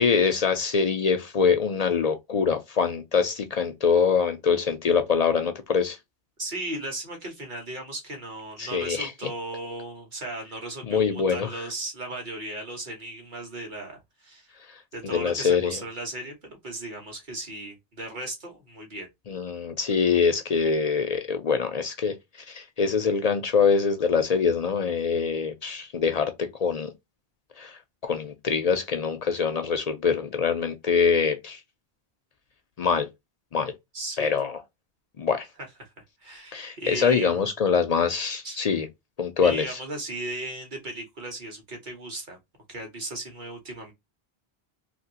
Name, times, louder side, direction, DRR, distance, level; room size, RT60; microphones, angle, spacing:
voice 1, 0.0-6.0 8.6-9.1 10.9-11.5 14.7-14.8 15.0-15.8 19.3-26.9 27.6-31.6 32.8-33.1 33.5-33.7 34.2-34.6 35.2-35.5 36.5-38.9 39.2-39.8, left 6 dB, 55° left, 0.4 m, -24 dB
voice 2, 6.4-14.5 14.9-16.3 16.6-19.1 33.9-34.3 35.8-35.9 36.2-37.4 38.4-38.6 39.4-42.4 42.7-43.9, right 2 dB, 50° right, 1.4 m, -36 dB
2.9 x 2.9 x 2.7 m
omnidirectional pair, 1.1 m